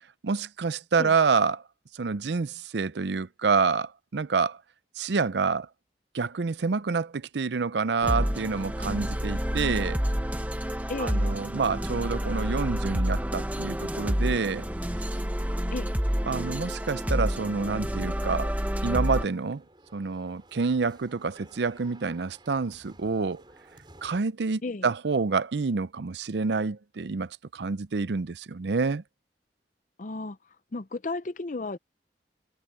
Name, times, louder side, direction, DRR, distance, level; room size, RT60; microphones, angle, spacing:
voice 1, 0.2-1.6 1.9-4.6 5.0-5.7 6.1-10.0 11.0-14.7 16.3-18.5 18.8-19.6 19.9-23.4 24.0-29.0, right 4 dB, 70° right, 0.5 m, -28 dB
sound 1, 8.0-19.2, equal, 10° right, 1.2 m, -29 dB
voice 2, 10.9-11.2 15.7-15.9 24.6-24.9 30.0-30.4 30.7-31.8, left 3 dB, 45° left, 0.6 m, -33 dB
sound 2, 18.1-24.2, right 1 dB, 25° right, 4.5 m, -55 dB
head